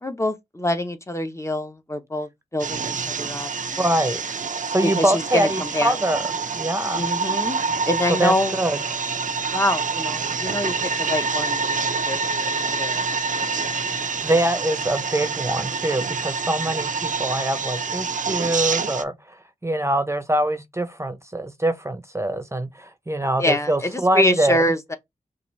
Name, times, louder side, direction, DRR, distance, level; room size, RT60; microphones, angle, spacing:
voice 1, 0.0-3.8 4.8-6.0 6.9-7.6 7.9-8.6 9.5-13.1 23.4-25.0, left 1 dB, 20° left, 0.9 m, -25 dB
sound 1, 2.6-19.0, right 5 dB, 60° right, 0.5 m, -27 dB
voice 2, 3.8-4.2 4.7-6.2 6.6-7.1 8.2-8.8 14.2-19.1 19.6-24.6, right 1 dB, 20° right, 0.7 m, -24 dB
5.7 x 2.5 x 3.2 m
wide cardioid pair, 65°, 15 cm